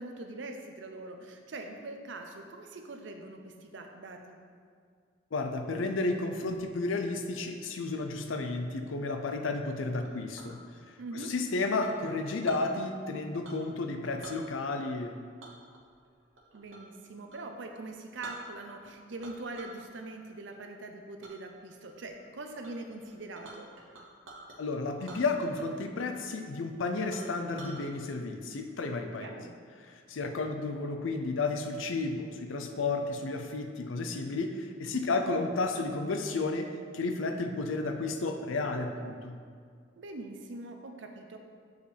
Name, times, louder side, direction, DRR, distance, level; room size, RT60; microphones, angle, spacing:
voice 1, 0.0-4.4 11.0-11.3 16.5-23.7 29.2-29.6 34.9-35.2 40.0-41.4, right 2 dB, 65° right, 4 dB, 0.6 m, -43 dB
voice 2, 5.3-10.6 11.3-15.1 24.6-29.4 29.8-36.7 36.9-39.4, left 3 dB, 80° left, 5 dB, 0.5 m, -32 dB
Chink clink, 10.0-10.6 11.8-12.7 13.4-13.7 14.0-14.4 15.4-16.9 17.3-17.5 17.9-18.0 18.2-18.8 19.2-19.8 20.2-20.6 21.2-21.4 21.9-22.2 22.6-22.7 23.0-24.6 25.0-25.8 26.1-26.2 26.6-26.7 27.1-27.8, right 2 dB, 80° right, 0.9 m, -49 dB
6.6 x 5.0 x 3.4 m, 2.1 s
head